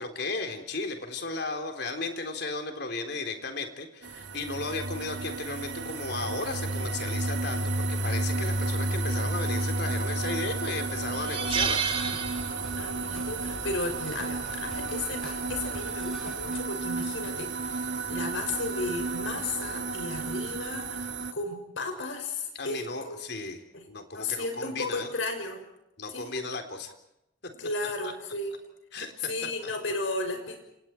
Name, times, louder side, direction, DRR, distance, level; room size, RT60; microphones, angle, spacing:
voice 1, 0.0-11.9 18.1-18.3 22.5-23.6 23.9-25.1 26.0-26.9 28.9-29.3, left 3 dB, 60° left, 6 dB, 3.8 m, -35 dB
sound 1, 4.0-21.3, right 2 dB, 70° right, 2.1 m, -32 dB
sound 2, 9.9-10.3 10.6-10.7 11.1-13.0 13.2-13.5 14.7-15.0, right 7 dB, 30° right, 3.0 m, -31 dB
sound 3, 11.4-16.6, equal, 5° left, 7.4 m, -45 dB
voice 2, 12.8-23.2 23.7-23.8 24.1-25.6 26.1-26.3 27.6-28.5 29.2-30.6, left 2 dB, 80° left, 6 dB, 6.3 m, -34 dB
30.0 x 28.5 x 4.6 m, 0.84 s
head